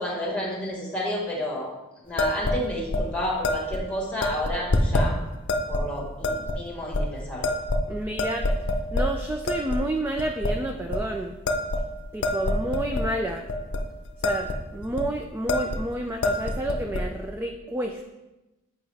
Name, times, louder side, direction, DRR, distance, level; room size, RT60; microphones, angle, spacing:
voice 1, 0.0-1.7 2.0-5.1 5.7-7.5, left 1 dB, 5° left, -2 dB, 1.6 m, -31 dB
sound 1, 2.2-2.6 2.9-3.0 3.4-3.8 4.2-5.1 5.5-5.8 6.2-6.6 6.9-7.0 7.4-7.9 8.2-9.1 9.5-9.8 10.2-10.5 10.9-11.1 11.5-13.1 13.5-13.8 14.1-14.6 14.8-15.0 15.5-15.8 16.1-17.0, left 1 dB, 55° left, 0.6 m, -26 dB
voice 2, 7.9-8.5 8.9-11.4 12.1-13.5 14.2-18.0, right 1 dB, 10° right, 3 dB, 0.3 m, -30 dB
8.1 x 5.2 x 3.4 m, 1.0 s
head